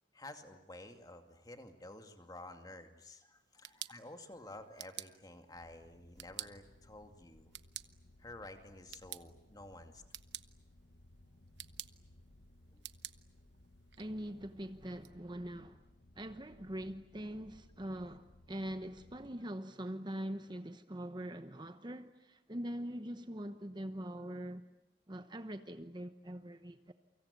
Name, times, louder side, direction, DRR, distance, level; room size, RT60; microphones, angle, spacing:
voice 1, 0.1-7.5 8.2-10.0 12.7-12.8, left 2 dB, 20° left, 2.4 m, -51 dB
sound 1, 3.3-15.1, right 14 dB, 75° right, 1.0 m, -52 dB
sound 2, 5.5-19.4, left 1 dB, 55° left, 1.3 m, -62 dB
voice 2, 14.0-15.8 16.2-24.6 25.1-26.9, right 1 dB, 25° right, 1.0 m, -43 dB
29.0 x 25.0 x 8.3 m
head